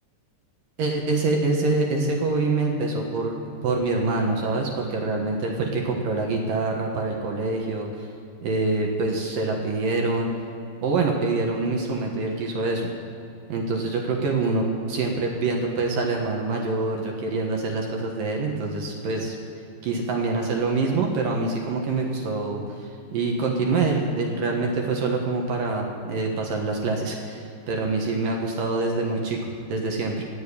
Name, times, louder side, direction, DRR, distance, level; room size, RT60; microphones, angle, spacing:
voice 1, 0.8-3.4 3.6-8.1 8.4-10.3 10.8-12.9 13.5-19.4 19.8-30.2, right 3 dB, 60° right, 1 dB, 2.6 m, -25 dB
18.0 x 7.2 x 10.0 m, 2.6 s
omnidirectional pair, 5.1 m